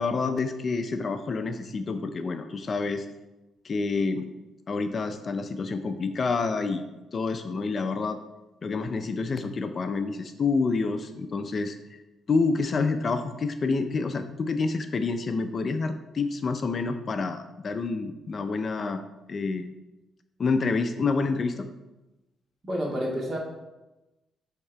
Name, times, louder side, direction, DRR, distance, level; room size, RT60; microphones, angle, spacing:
voice 1, 0.0-3.1 3.6-4.3 4.7-6.8 7.1-8.2 8.6-11.8 12.3-19.0 19.3-19.7 20.4-21.7, left 4 dB, 40° left, 8 dB, 0.5 m, -28 dB
voice 2, 22.7-23.4, equal, 40° right, -3 dB, 2.1 m, -29 dB
7.6 x 3.6 x 4.5 m, 1.0 s
cardioid pair, 90°, 0 cm